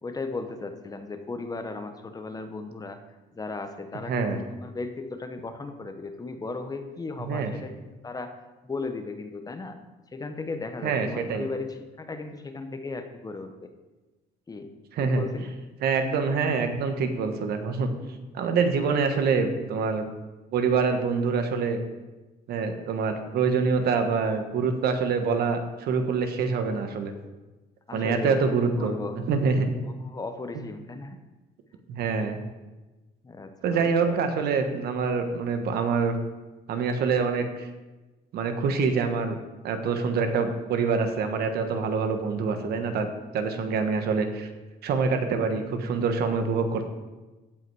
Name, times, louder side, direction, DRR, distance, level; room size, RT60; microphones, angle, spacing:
voice 1, 0.0-3.0 3.3-7.7 8.0-8.3 8.6-9.8 10.1-13.7 14.5-14.7 15.0-15.6 27.9-29.2 29.8-31.2 33.2-34.2, left 3 dB, 20° left, 7 dB, 0.9 m, -36 dB
voice 2, 4.1-4.4 7.2-7.5 10.8-11.5 14.9-15.2 15.8-17.9 18.3-20.1 20.5-21.8 22.5-27.1 27.9-28.9 29.3-29.7 30.5-30.6 31.9-32.4 33.6-36.2 36.7-37.7 38.3-39.4 39.6-43.1 43.3-44.5 44.8-46.9, right 5 dB, 70° right, 6 dB, 1.3 m, -25 dB
16.0 x 5.5 x 4.8 m, 1.2 s
cardioid pair, 110°, 17 cm